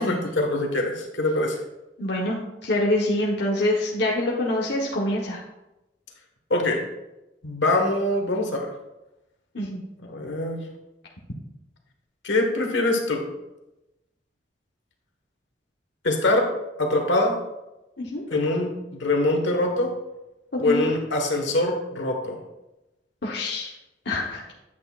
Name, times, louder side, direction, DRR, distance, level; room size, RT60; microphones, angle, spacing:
voice 1, 0.0-1.6 6.5-6.8 7.4-8.7 10.0-10.6 12.2-13.2 16.0-16.5 16.8-17.3 18.3-19.9 20.6-22.4, left 2 dB, 80° left, 3 dB, 1.4 m, -23 dB
voice 2, 2.0-5.4 9.5-9.8 18.0-18.2 20.7-20.9 23.2-23.7 24.0-24.4, left 1 dB, 65° left, -3 dB, 1.1 m, -25 dB
9.3 x 8.2 x 2.4 m, 0.97 s
head